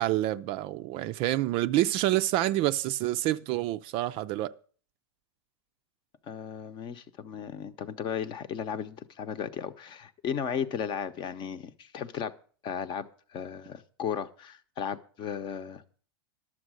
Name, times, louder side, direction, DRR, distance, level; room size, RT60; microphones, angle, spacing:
voice 1, 0.0-4.6, right 15 dB, 40° right, 0.4 m, -27 dB
voice 2, 6.3-12.3 12.6-16.0, left 8 dB, 35° left, 0.8 m, -35 dB
11.5 x 7.3 x 6.3 m
hypercardioid pair, 125°, 14 cm